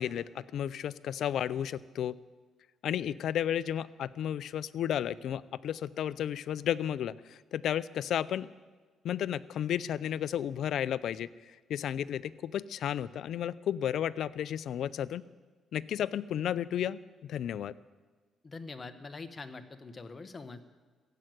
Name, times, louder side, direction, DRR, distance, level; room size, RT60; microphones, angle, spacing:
voice 1, 0.0-2.2 2.8-8.5 9.0-11.3 11.7-15.2 15.7-17.7, left 10 dB, 70° left, 18 dB, 0.4 m, -33 dB
voice 2, 18.4-20.6, left 3 dB, 30° left, 9 dB, 1.1 m, -44 dB
15.5 x 7.7 x 9.2 m, 1.4 s
cardioid pair, 90°, 0 cm